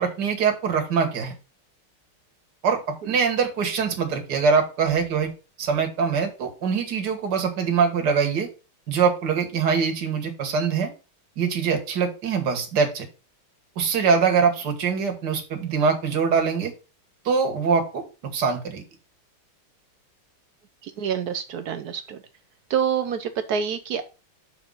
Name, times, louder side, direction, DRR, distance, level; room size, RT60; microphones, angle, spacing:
voice 1, 0.0-1.3 2.6-5.3 5.6-8.5 8.9-10.9 11.4-13.1 13.8-16.7 17.3-18.0 18.3-18.8, right 5 dB, 55° right, 4 dB, 2.0 m, -23 dB
voice 2, 20.8-22.2 22.7-24.1, right 7 dB, 70° right, 10 dB, 0.9 m, -27 dB
6.3 x 4.5 x 5.5 m, 0.32 s
omnidirectional pair, 2.3 m